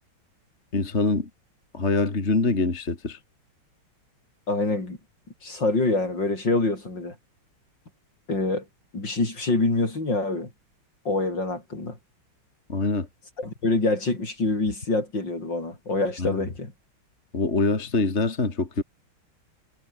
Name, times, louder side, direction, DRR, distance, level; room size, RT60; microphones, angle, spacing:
voice 1, 0.7-1.3 1.7-3.2 12.7-13.1 16.2-16.4 17.3-18.8, left 3 dB, 30° left, 2.9 m, -24 dB
voice 2, 4.5-5.0 5.4-7.2 8.3-8.7 8.9-10.5 11.1-12.0 13.4-16.7, left 2 dB, 60° left, 6.9 m, -25 dB
omnidirectional pair, 2.3 m